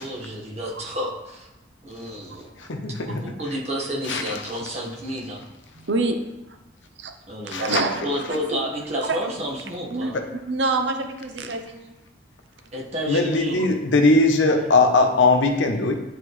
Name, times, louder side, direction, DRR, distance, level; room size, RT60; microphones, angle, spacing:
voice 1, 0.0-1.5 1.8-2.4 3.1-5.4 7.3-7.7 8.0-10.2 12.7-13.7, equal, 35° right, -3 dB, 1.4 m, -30 dB
voice 2, 2.6-3.2 4.1-4.4 7.5-7.8 10.1-10.2 13.1-16.0, left 3 dB, 80° left, 5 dB, 0.8 m, -20 dB
voice 3, 5.8-6.2 7.0-7.1 7.5-8.0 8.5-8.6 9.0-9.2 9.9-10.1 10.5-11.9, right 3 dB, 70° right, 6 dB, 0.7 m, -26 dB
10.0 x 4.4 x 3.2 m, 0.96 s
head